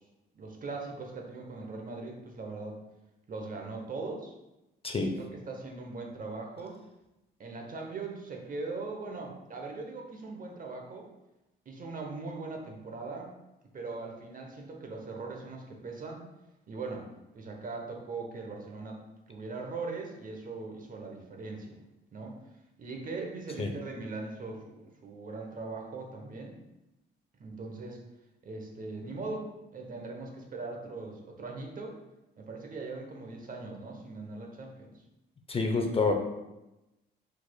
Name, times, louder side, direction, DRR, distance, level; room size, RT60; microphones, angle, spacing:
voice 1, 0.3-2.8 3.3-4.3 5.1-6.8 7.4-11.1 11.7-13.3 13.7-16.3 16.7-17.1 17.3-19.0 19.3-21.8 22.1-22.3 22.8-26.6 27.4-28.0 28.4-31.9 32.4-34.9, right 3 dB, 45° right, 1 dB, 0.9 m, -40 dB
voice 2, 4.8-5.1 23.6-23.7 35.5-36.1, left 3 dB, 30° left, 3 dB, 0.6 m, -27 dB
4.8 x 4.1 x 2.3 m, 0.96 s
cardioid pair, 90°, 20 cm